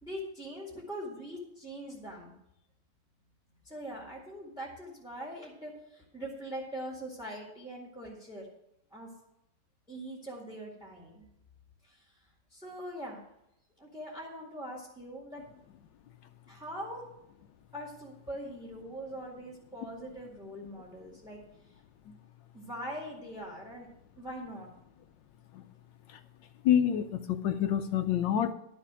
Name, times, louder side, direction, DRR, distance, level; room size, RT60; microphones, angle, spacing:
voice 1, 0.0-2.3 3.6-8.5 8.9-9.1 9.9-11.3 11.8-13.2 13.8-15.4 16.5-17.1 17.7-21.4 22.5-23.9 24.2-24.7, equal, ahead, -2 dB, 2.0 m, -42 dB
voice 2, 26.6-28.5, left 9 dB, 85° left, 7 dB, 1.3 m, -27 dB
11.5 x 7.1 x 6.2 m, 0.80 s
omnidirectional pair, 2.0 m